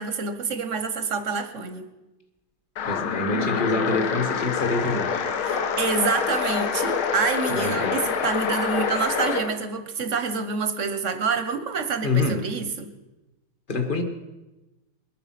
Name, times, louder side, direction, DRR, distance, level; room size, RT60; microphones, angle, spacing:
voice 1, 0.0-1.9 5.4-12.9, right 5 dB, 50° right, 9 dB, 1.0 m, -27 dB
sound 1, 2.8-9.5, left 6 dB, 90° left, 1.9 m, -26 dB
voice 2, 2.8-5.3 7.5-8.0 12.0-12.4 13.7-14.0, left 3 dB, 30° left, 6 dB, 1.3 m, -26 dB
21.5 x 8.8 x 5.9 m, 1.1 s
omnidirectional pair, 2.2 m